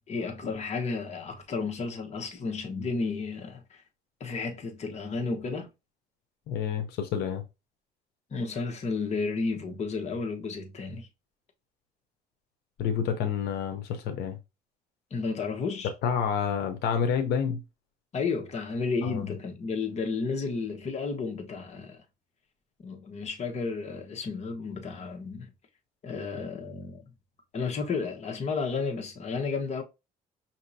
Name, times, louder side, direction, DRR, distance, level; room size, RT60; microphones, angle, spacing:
voice 1, 0.1-3.8 4.2-5.7 8.3-11.1 15.1-15.9 18.1-22.0 22.8-25.5 26.0-27.0 27.5-29.8, left 4 dB, 40° left, 1.1 m, -32 dB
voice 2, 6.5-7.4 12.8-14.4 16.0-17.6 19.0-19.2, left 7 dB, 80° left, 0.7 m, -28 dB
5.8 x 2.8 x 2.7 m
cardioid pair, 110°, 17 cm